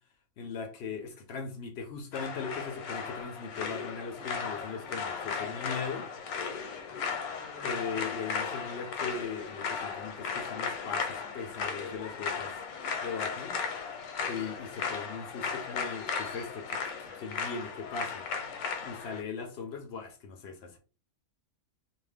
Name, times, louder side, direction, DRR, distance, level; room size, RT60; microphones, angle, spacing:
voice 1, 0.4-6.1 7.6-12.6 13.0-13.6 14.2-16.8 17.1-18.3 18.8-20.8, left 5 dB, 65° left, 0.6 m, -39 dB
sound 1, 2.1-19.2, left 5 dB, 85° left, 1.1 m, -36 dB
2.5 x 2.2 x 3.4 m
omnidirectional pair, 1.5 m